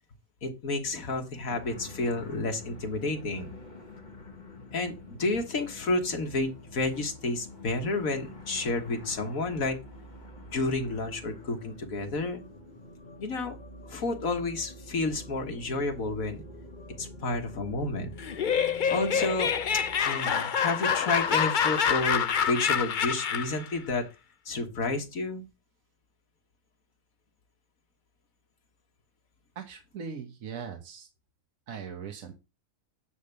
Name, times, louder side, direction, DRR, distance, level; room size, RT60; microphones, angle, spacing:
voice 1, 0.4-3.5 4.7-9.8 10.5-12.4 13.2-13.6 13.9-16.4 17.0-18.1 18.9-19.5 20.0-24.1 24.5-25.4, left 2 dB, 75° left, 4 dB, 1.9 m, -30 dB
sound 1, 1.5-20.0, left 1 dB, 35° left, 1.4 m, -46 dB
Laughter, 18.2-23.6, left 7 dB, 50° left, 0.6 m, -27 dB
voice 2, 29.5-31.1 31.7-32.3, right 6 dB, 70° right, 4 dB, 1.5 m, -40 dB
9.5 x 3.5 x 6.8 m, 0.27 s
omnidirectional pair, 1.5 m